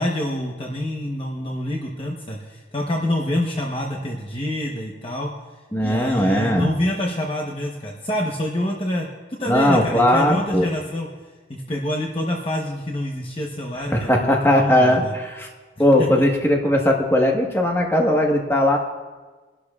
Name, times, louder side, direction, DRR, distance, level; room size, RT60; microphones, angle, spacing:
voice 1, 0.0-5.3 5.8-9.1 9.4-11.1 11.5-15.1 16.0-16.3, left 1 dB, 30° left, -1 dB, 1.0 m, -26 dB
voice 2, 5.7-6.7 9.5-10.7 13.9-15.5 15.8-18.8, left 1 dB, 15° left, 0 dB, 1.3 m, -18 dB
23.0 x 12.0 x 2.4 m, 1.3 s
head